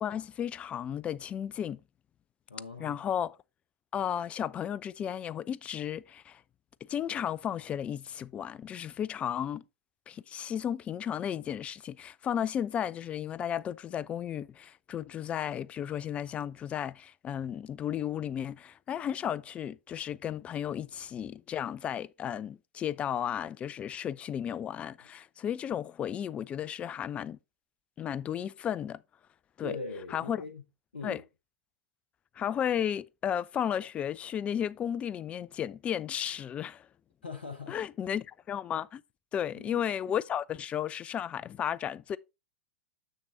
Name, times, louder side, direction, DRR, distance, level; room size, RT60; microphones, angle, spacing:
voice 1, 0.0-1.8 2.8-3.4 3.9-6.4 6.9-9.6 10.1-27.4 28.0-29.0 29.6-29.8 30.1-30.4 31.0-31.2 32.4-36.9 37.7-39.0 39.3-42.2, left 9 dB, 20° left, 0.3 m, -34 dB
voice 2, 2.5-3.0 29.6-30.6 30.9-31.2 37.2-37.8 39.6-39.9, left 3 dB, 75° left, 0.9 m, -41 dB
6.6 x 6.4 x 4.0 m
figure-of-eight pair, 95°, 6 cm